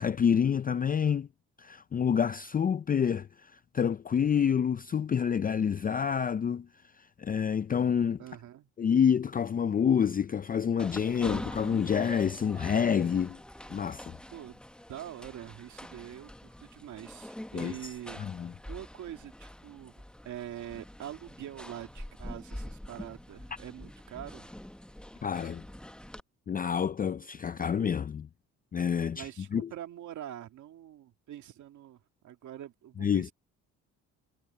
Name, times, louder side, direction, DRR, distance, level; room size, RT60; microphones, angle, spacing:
voice 1, 0.0-1.3 1.6-6.7 7.0-8.2 8.8-13.4 13.7-14.2 17.5-17.7 18.2-18.5 25.2-25.6 26.5-28.3 28.7-29.7 33.0-33.3, left 7 dB, 30° left, 0.4 m, -28 dB
voice 2, 8.2-8.7 14.3-14.6 14.9-18.2 18.7-24.5 29.1-33.3, right 11 dB, 75° right, 2.2 m, -44 dB
sound 1, 10.8-26.2, left 1 dB, 5° left, 0.9 m, -45 dB
cardioid pair, 90°, 30 cm